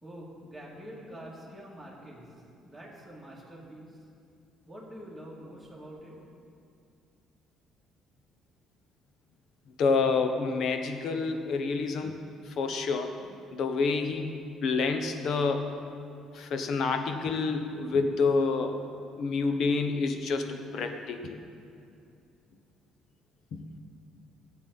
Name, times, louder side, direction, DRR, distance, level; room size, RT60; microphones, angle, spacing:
voice 1, 0.0-4.0 4.6-6.2, equal, ahead, -6 dB, 2.4 m, -46 dB
voice 2, 9.8-12.1 12.6-13.2 13.5-15.7 16.3-18.8 19.2-21.4 23.5-23.6, left 4 dB, 60° left, 6 dB, 0.9 m, -28 dB
14.0 x 8.0 x 4.1 m, 2.5 s
cardioid pair, 120°, 0 cm